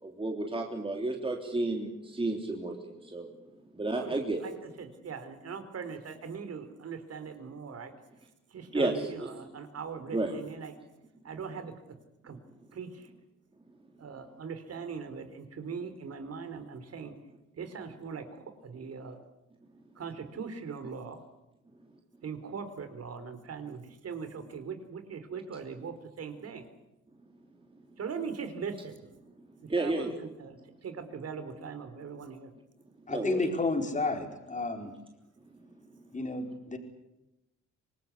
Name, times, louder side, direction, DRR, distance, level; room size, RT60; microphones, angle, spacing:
voice 1, 0.0-3.3 3.7-4.4 8.7-9.4 10.1-10.3 29.7-30.1 33.1-33.5, right 2 dB, 15° right, 2 dB, 3.2 m, -31 dB
voice 2, 3.9-4.5 4.8-7.9 8.5-10.7 11.3-11.7 12.2-12.4 12.7-13.1 14.0-17.1 17.6-19.2 20.0-21.2 22.2-26.6 28.0-29.0 29.8-32.5, right 6 dB, 55° right, 10 dB, 4.0 m, -40 dB
voice 3, 33.1-34.9 36.1-36.8, left 3 dB, 25° left, 5 dB, 4.5 m, -31 dB
26.0 x 19.5 x 8.4 m, 0.93 s
cardioid pair, 90°, 30 cm